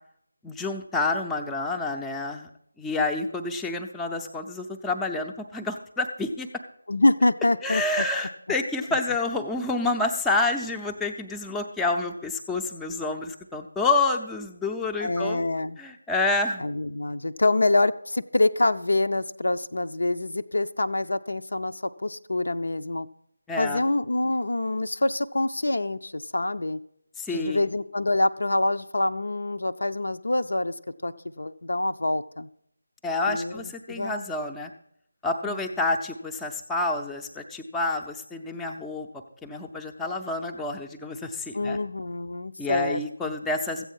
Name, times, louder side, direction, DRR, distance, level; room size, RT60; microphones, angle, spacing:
voice 1, 0.4-2.5 2.8-6.5 7.6-15.5 15.8-16.7 23.5-23.8 27.2-27.7 33.0-34.7 35.2-39.1 39.4-41.8 42.6-43.8, left 3 dB, 5° left, 1 dB, 0.5 m, -28 dB
voice 2, 6.9-8.0 15.0-15.8 16.6-23.1 23.6-26.8 27.3-30.7 31.0-32.5 33.3-34.3 35.4-35.6 41.5-43.4, left 2 dB, 65° left, 11 dB, 0.5 m, -26 dB
14.0 x 8.2 x 5.5 m, 0.71 s
figure-of-eight pair, 160°, 0 cm